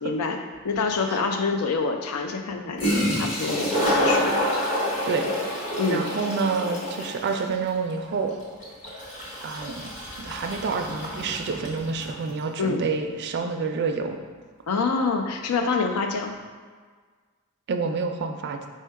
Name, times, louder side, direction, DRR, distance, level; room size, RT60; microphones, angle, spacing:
voice 1, 0.0-4.3 5.8-6.0 12.6-12.9 14.7-16.3, left 4 dB, 75° left, 4 dB, 0.4 m, -26 dB
Toilet flush, 0.8-0.9 2.5-2.6 2.8-12.2, equal, 35° left, 1.0 m, -28 dB
voice 2, 5.0-8.3 9.4-9.9 10.2-14.2 17.7-18.6, right 4 dB, 50° right, 5 dB, 0.3 m, -28 dB
4.4 x 2.2 x 4.5 m, 1.6 s
head